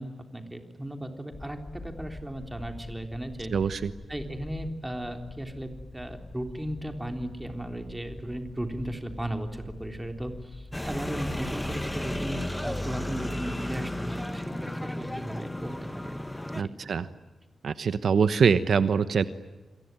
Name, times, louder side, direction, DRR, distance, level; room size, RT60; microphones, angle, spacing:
voice 1, 0.0-3.5 4.1-16.9, right 1 dB, 10° right, 5 dB, 3.6 m, -36 dB
sound 1, 1.3-12.2, left 2 dB, 30° left, 6.8 m, -45 dB
voice 2, 3.5-3.9 16.5-17.1 17.6-19.2, right 6 dB, 70° right, 12 dB, 1.0 m, -24 dB
sound 2, 10.7-16.6, left 1 dB, 10° left, 1.1 m, -34 dB
28.5 x 22.5 x 9.2 m, 1.2 s
wide cardioid pair, 135°, 0 cm